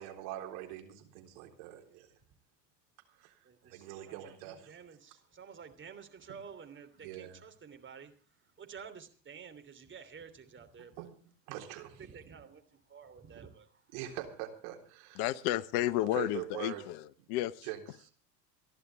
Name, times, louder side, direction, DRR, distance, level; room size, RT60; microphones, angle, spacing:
voice 1, 0.0-2.1 3.2-4.8 7.0-7.4 11.0-11.1 11.5-12.0 13.9-15.2 16.1-16.8 17.6-18.1, right 13 dB, 60° right, 4 dB, 3.9 m, -43 dB
voice 2, 3.4-11.1 11.9-13.9, right 6 dB, 25° right, 8 dB, 3.1 m, -51 dB
voice 3, 15.2-17.7, left 14 dB, 50° left, 17 dB, 0.9 m, -32 dB
28.0 x 11.0 x 3.5 m, 0.38 s
hypercardioid pair, 85°, 49 cm